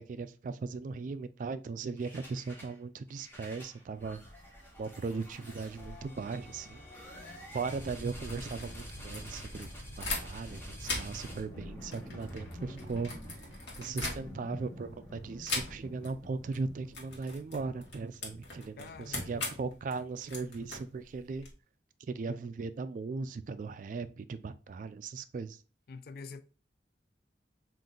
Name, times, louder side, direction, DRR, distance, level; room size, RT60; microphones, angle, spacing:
voice 1, 0.0-4.2 4.8-7.1 7.5-9.7 10.0-13.5 13.8-21.5 22.0-25.6, right 4 dB, 45° right, 0.3 m, -38 dB
sound 1, 2.0-2.8 3.1-20.0, equal, 10° left, 1.1 m, -47 dB
sound 2, 8.1-10.5 10.8-14.6 15.4-16.1 16.4-16.6 16.9-21.5, left 2 dB, 90° left, 1.2 m, -40 dB
voice 2, 13.9-14.6 18.8-19.4 25.9-26.4, left 4 dB, 55° left, 0.4 m, -47 dB
3.8 x 2.5 x 3.7 m
head